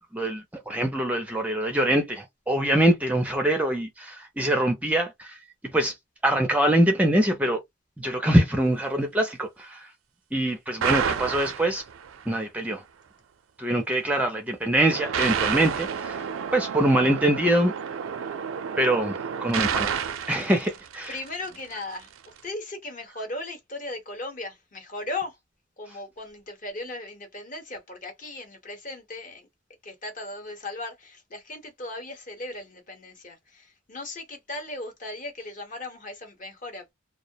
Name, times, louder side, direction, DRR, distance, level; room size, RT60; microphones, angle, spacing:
voice 1, 0.0-5.4 5.6-5.9 6.2-7.6 8.0-9.9 10.3-11.8 12.3-12.8 13.6-16.3 16.5-17.7 18.8-21.2, right 1 dB, 5° right, 0.4 m, -24 dB
sound 1, 10.8-12.2 14.9-21.5, right 7 dB, 90° right, 0.4 m, -30 dB
voice 2, 21.1-25.4 25.8-29.5 29.8-36.9, left 2 dB, 40° left, 0.9 m, -37 dB
2.2 x 2.0 x 2.7 m
head